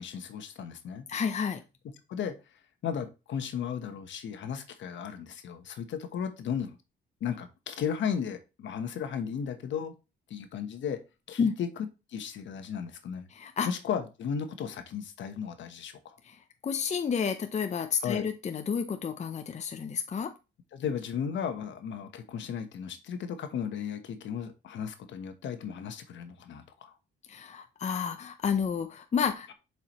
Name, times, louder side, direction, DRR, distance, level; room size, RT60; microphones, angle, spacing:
voice 1, 0.0-1.1 2.1-2.4 2.8-6.8 7.2-10.0 10.3-11.0 11.3-11.7 12.1-13.3 13.7-16.2 18.0-18.3 20.7-26.9, left 7 dB, 70° left, 8 dB, 1.1 m, -35 dB
voice 2, 1.1-1.6 11.4-11.6 13.3-13.7 16.2-20.3 27.3-29.5, left 6 dB, 35° left, 7 dB, 0.7 m, -30 dB
7.1 x 4.8 x 3.0 m, 0.28 s
cardioid pair, 90°, 20 cm